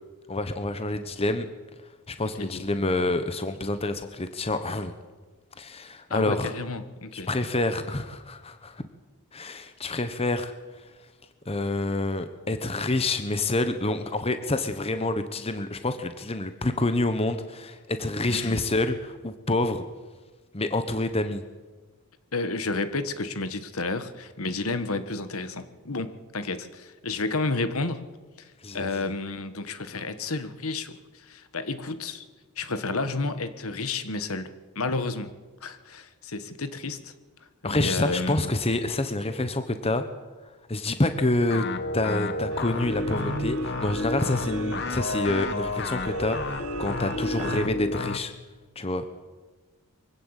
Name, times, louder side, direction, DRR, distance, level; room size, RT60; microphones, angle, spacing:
voice 1, 0.3-1.5 2.1-4.9 5.6-6.5 7.1-8.9 9.3-10.9 11.5-19.8 20.5-21.4 28.6-29.1 37.6-40.0 40.7-41.6 41.9-48.3 48.7-49.0, left 2 dB, 25° left, 9 dB, 1.1 m, -27 dB
voice 2, 2.2-2.7 6.1-7.3 18.3-18.6 22.3-28.1 28.4-32.2 32.6-35.3 35.6-37.1 37.6-38.5, left 3 dB, 70° left, 11 dB, 1.5 m, -31 dB
sound 1, 41.5-48.2, left 2 dB, 50° left, 1.2 m, -31 dB
sound 2, 42.5-47.7, right 4 dB, 65° right, 1.2 m, -38 dB
23.5 x 16.0 x 8.2 m, 1.3 s
head